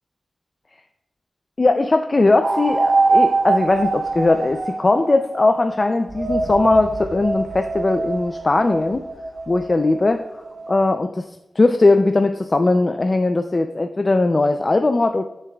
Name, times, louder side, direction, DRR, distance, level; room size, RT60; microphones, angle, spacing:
voice 1, 1.6-9.0 9.5-10.2 10.7-11.3 11.6-15.2, left 2 dB, 35° left, 7 dB, 0.4 m, -19 dB
sound 1, 2.4-5.6 6.1-10.7, right 3 dB, 70° right, 1.0 m, -23 dB
12.5 x 7.2 x 2.3 m, 0.95 s
wide cardioid pair, 110°, 0 cm